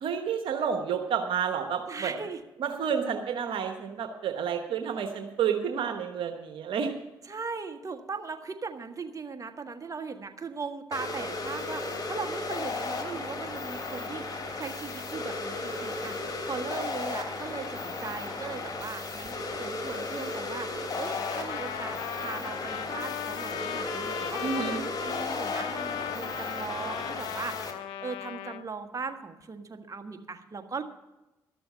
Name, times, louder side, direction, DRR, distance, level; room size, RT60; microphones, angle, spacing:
voice 1, 0.0-2.1 2.6-6.9 24.4-24.8, right 7 dB, 70° right, 5 dB, 1.1 m, -30 dB
voice 2, 1.9-2.4 7.2-14.2 14.6-16.2 16.5-27.6 28.0-30.8, right 4 dB, 40° right, 6 dB, 1.6 m, -39 dB
sound 1, 10.9-27.7, left 3 dB, 45° left, 2.9 m, -35 dB
Trumpet, 20.9-28.6, left 9 dB, 80° left, 0.6 m, -37 dB
13.0 x 6.9 x 9.2 m, 0.99 s
hypercardioid pair, 50°, 9 cm